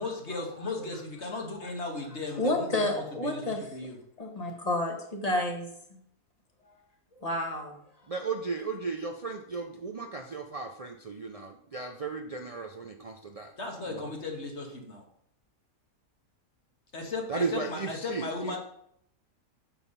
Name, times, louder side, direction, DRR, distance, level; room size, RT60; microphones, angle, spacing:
voice 1, 0.0-4.0 13.6-15.0 16.9-18.6, left 3 dB, 50° left, 1 dB, 1.8 m, -36 dB
voice 2, 2.4-3.6 4.2-5.7 7.2-7.7, left 1 dB, 25° left, 2 dB, 1.5 m, -30 dB
voice 3, 8.1-13.5 13.9-14.0 17.3-18.6, right 4 dB, 70° right, 3 dB, 0.3 m, -35 dB
7.1 x 5.8 x 5.5 m, 0.70 s
omnidirectional pair, 1.6 m